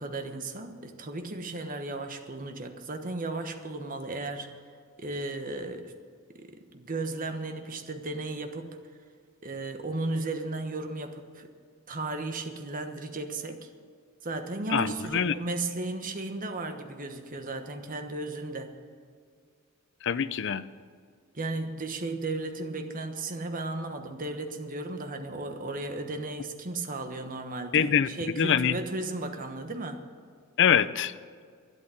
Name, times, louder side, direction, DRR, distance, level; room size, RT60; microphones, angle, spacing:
voice 1, 0.0-4.5 5.0-5.9 6.3-8.8 9.4-11.5 11.9-13.7 14.2-18.7 21.3-30.0, right 2 dB, 40° right, 6 dB, 1.2 m, -35 dB
voice 2, 14.7-15.3 20.0-20.6 27.7-28.7 30.6-31.1, left 8 dB, 55° left, 15 dB, 0.5 m, -24 dB
12.0 x 11.0 x 7.6 m, 2.1 s
head